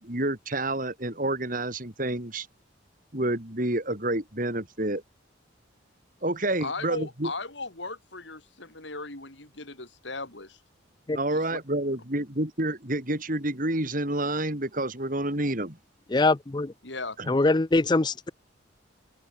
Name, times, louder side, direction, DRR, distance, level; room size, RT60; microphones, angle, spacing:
voice 1, 0.0-2.5 3.1-5.0 6.2-7.3 11.1-15.8 17.2-17.3, right 1 dB, 45° right, 4.3 m, -29 dB
voice 2, 6.6-10.6 11.3-11.6 16.8-17.2, left 3 dB, 70° left, 5.0 m, -37 dB
voice 3, 16.1-16.7 17.3-18.3, left 2 dB, 25° left, 0.5 m, -23 dB
open air
head